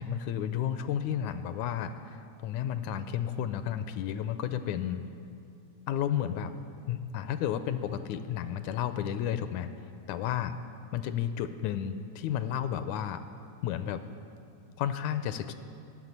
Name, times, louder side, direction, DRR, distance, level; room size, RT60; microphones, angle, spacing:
voice 1, 0.0-5.0 5.9-6.5 6.9-9.7 10.1-10.5 10.9-13.2 13.6-14.1 14.8-15.5, left 9 dB, 80° left, 11 dB, 1.9 m, -32 dB
13.5 x 7.3 x 9.7 m, 2.6 s
omnidirectional pair, 3.4 m